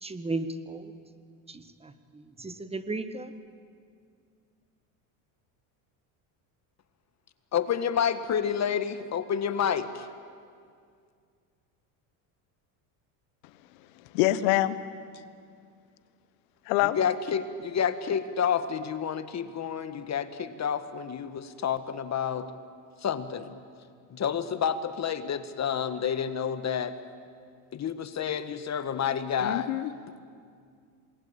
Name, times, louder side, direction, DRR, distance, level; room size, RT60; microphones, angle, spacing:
voice 1, 0.0-0.9 1.5-3.3, right 3 dB, 15° right, 11 dB, 1.5 m, -35 dB
voice 2, 7.5-10.1 17.0-22.5 23.0-23.5 24.1-26.9 27.7-29.7, left 8 dB, 35° left, 11 dB, 1.6 m, -29 dB
voice 3, 13.9-14.8 16.6-17.0 29.4-29.9, left 15 dB, 80° left, 14 dB, 1.4 m, -25 dB
27.5 x 20.5 x 8.9 m, 2.2 s
supercardioid pair, 105°, 44 cm